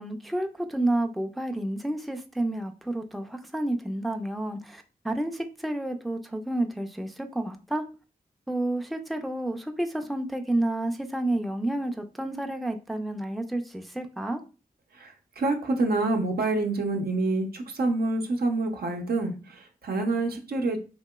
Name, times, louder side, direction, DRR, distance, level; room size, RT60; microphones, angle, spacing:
voice 1, 0.0-7.8 8.5-14.4, right 1 dB, ahead, 0.4 m, -30 dB
voice 2, 14.9-20.8, right 2 dB, 80° right, 0.6 m, -27 dB
2.9 x 2.8 x 2.3 m
cardioid pair, 40°, 16 cm